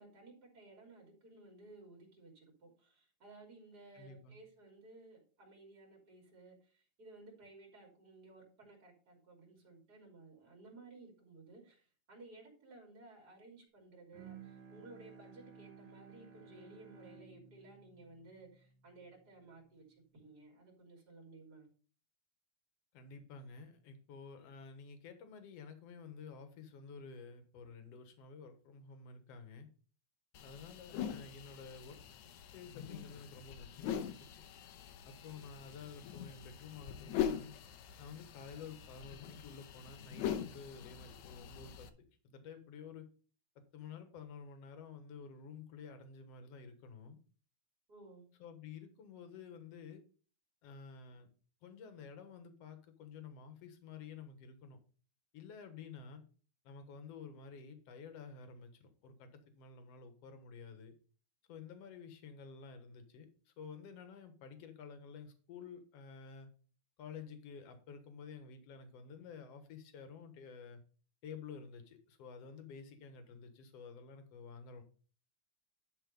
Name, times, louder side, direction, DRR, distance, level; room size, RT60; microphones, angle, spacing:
voice 1, 0.0-19.9 20.1-21.7 35.3-35.4 47.9-48.3, right 2 dB, 30° right, -1 dB, 3.6 m, -57 dB
voice 2, 3.9-4.4 22.9-29.7 30.4-32.0 32.5-34.4 35.1-37.5 38.0-43.1 43.6-47.2 48.4-50.0 50.6-51.3 51.6-54.8 55.3-56.2 56.6-61.0 61.5-66.5 67.0-70.8 71.2-74.8, left 5 dB, 60° left, 8 dB, 2.3 m, -51 dB
Bowed string instrument, 14.1-19.6, right 6 dB, 50° right, 1.7 m, -56 dB
sound 1, 30.3-41.9, left 9 dB, 80° left, 2.2 m, -43 dB
11.5 x 4.4 x 5.3 m, 0.40 s
omnidirectional pair, 3.4 m